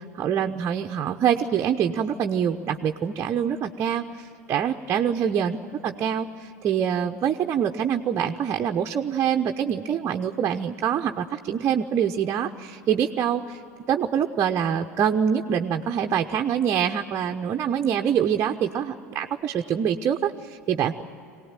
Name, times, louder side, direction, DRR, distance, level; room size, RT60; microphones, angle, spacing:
voice 1, 0.2-13.6 13.9-21.0, right 8 dB, 35° right, 3 dB, 0.9 m, -25 dB
23.0 x 18.5 x 9.0 m, 2.8 s
hypercardioid pair, 75°, 8 cm